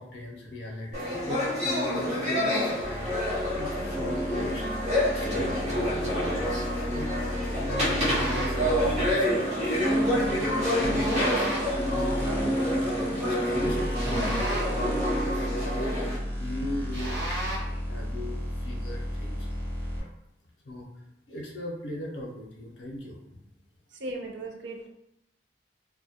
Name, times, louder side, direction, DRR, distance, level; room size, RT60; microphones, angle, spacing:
voice 1, 0.0-4.7 5.1-5.9 6.7-7.1 7.5-9.5 9.8-17.4 17.9-19.7 19.9-20.1 20.6-20.9 21.3-23.2, left 1 dB, 75° left, 0 dB, 0.5 m, -38 dB
sound 1, 0.9-16.2, equal, 40° right, 0.8 m, -27 dB
sound 2, 2.8-20.0, equal, 10° left, 0.4 m, -34 dB
sound 3, 8.0-8.7 11.0-11.8 13.9-14.9 16.9-17.8, right 1 dB, 65° right, 1.0 m, -34 dB
voice 2, 24.0-24.9, right 2 dB, 80° right, 2 dB, 0.4 m, -36 dB
2.2 x 2.1 x 2.7 m, 0.79 s
head